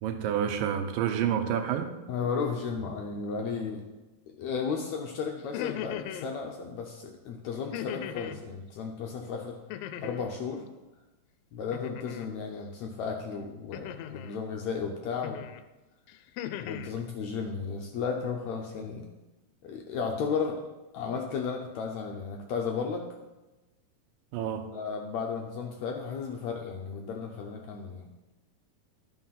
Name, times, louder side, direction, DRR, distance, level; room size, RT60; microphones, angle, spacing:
voice 1, 0.0-1.9 24.3-24.7, right 9 dB, 80° right, 7 dB, 2.5 m, -29 dB
voice 2, 2.1-3.8 4.4-9.6 10.0-10.6 11.5-15.5 16.6-19.1 19.6-20.6 20.9-23.1 24.7-28.1, left 5 dB, 75° left, 1 dB, 1.7 m, -34 dB
sound 1, 5.4-6.3 7.7-8.4 9.7-10.4 11.7-12.3 13.7-14.4 15.2-15.6 16.1-16.9, left 11 dB, 90° left, 2.3 m, -38 dB
11.5 x 5.9 x 5.7 m, 1.1 s
omnidirectional pair, 4.0 m